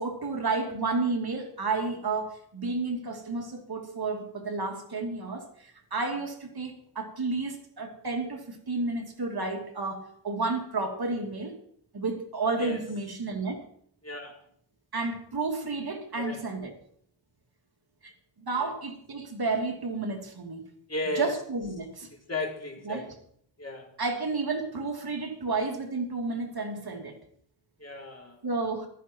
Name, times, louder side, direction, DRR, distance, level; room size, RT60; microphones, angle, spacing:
voice 1, 0.0-11.5 11.9-13.6 14.9-16.7 18.0-18.1 18.4-20.6 21.1-22.1 22.8-23.2 24.0-27.2 28.4-28.9, right 3 dB, 55° right, 3 dB, 2.7 m, -31 dB
voice 2, 20.9-21.3 22.3-23.0 23.6-23.9 27.8-28.4, left 2 dB, 35° left, 0 dB, 4.3 m, -34 dB
15.0 x 13.5 x 4.6 m, 0.63 s
wide cardioid pair, 90°, 46 cm